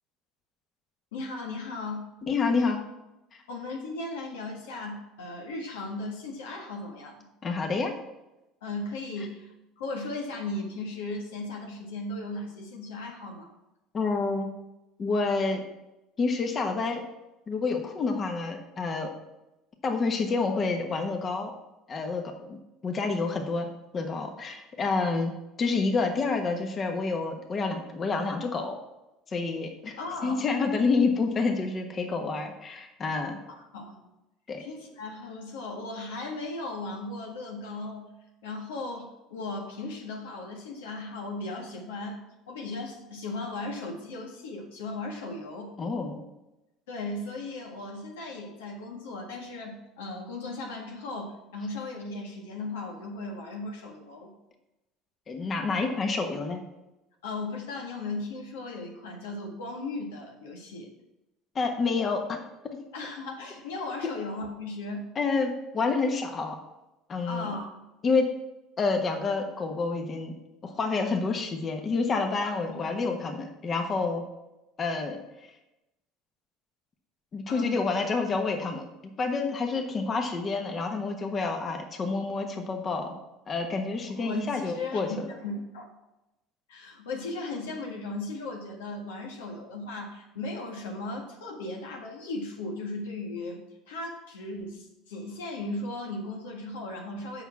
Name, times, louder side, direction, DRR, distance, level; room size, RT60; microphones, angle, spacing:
voice 1, 1.1-2.1 3.5-7.2 8.6-13.5 30.0-30.4 33.7-34.0 34.6-38.1 38.4-42.2 42.5-45.7 46.9-54.3 57.2-60.9 62.9-65.1 67.2-67.7 73.0-73.1 77.5-77.7 84.2-85.0 85.4-85.8 86.7-97.4, left 2 dB, 85° left, 1 dB, 1.6 m, -37 dB
voice 2, 2.2-2.8 3.3-3.4 7.4-7.9 13.9-14.5 15.0-15.6 16.2-17.0 17.5-19.1 19.8-21.5 21.9-22.6 22.8-23.7 23.9-25.3 25.6-28.8 29.3-33.4 34.5-34.6 45.8-46.2 55.3-56.6 61.5-62.4 62.6-62.8 64.0-64.1 65.1-66.6 67.1-67.5 68.0-68.3 68.8-70.3 70.6-74.2 74.8-75.5 77.3-83.1 83.5-85.3, left 4 dB, 35° left, 4 dB, 1.3 m, -28 dB
7.2 x 5.8 x 6.0 m, 0.97 s
hypercardioid pair, 85°, 0 cm